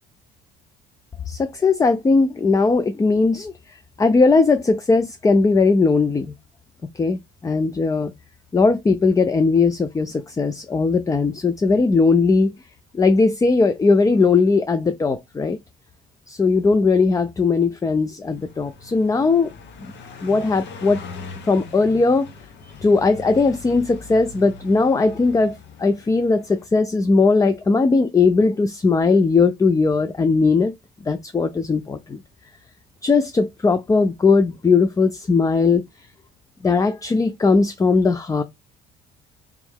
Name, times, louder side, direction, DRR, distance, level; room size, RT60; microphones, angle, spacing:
voice 1, 1.3-3.5 4.0-6.3 7.0-8.1 8.5-12.5 12.9-15.6 16.3-19.5 19.8-19.9 20.2-21.0 21.5-22.3 22.8-30.7 31.1-32.2 33.0-35.8 36.6-38.4, left 4 dB, 15° left, 0.4 m, -18 dB
Car passing by, 18.2-26.7, left 4 dB, 65° left, 1.1 m, -41 dB
3.5 x 3.1 x 3.4 m
cardioid pair, 95°, 20 cm